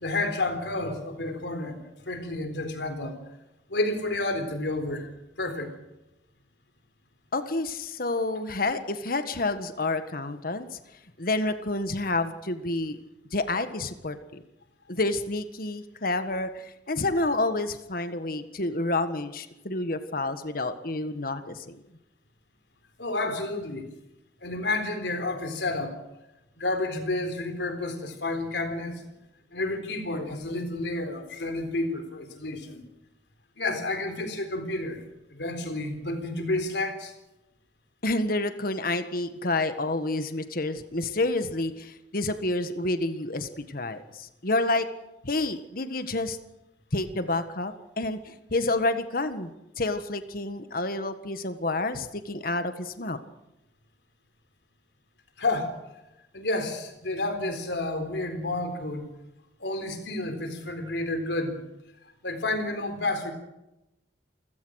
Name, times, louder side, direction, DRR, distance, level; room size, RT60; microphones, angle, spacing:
voice 1, 0.0-1.8 2.1-3.2 3.7-5.1 5.4-5.7 23.0-23.9 24.4-26.0 26.6-29.0 29.5-32.9 33.6-35.0 35.3-37.1 55.4-55.7 56.3-59.1 59.6-61.6 62.2-63.3, left 2 dB, 75° left, 8 dB, 3.9 m, -30 dB
voice 2, 7.3-10.8 11.2-13.0 13.3-14.4 14.9-21.8 38.0-44.9 45.2-46.4 46.9-49.5 49.8-53.2, left 2 dB, 55° left, 10 dB, 1.6 m, -29 dB
28.5 x 16.5 x 6.5 m, 0.92 s
head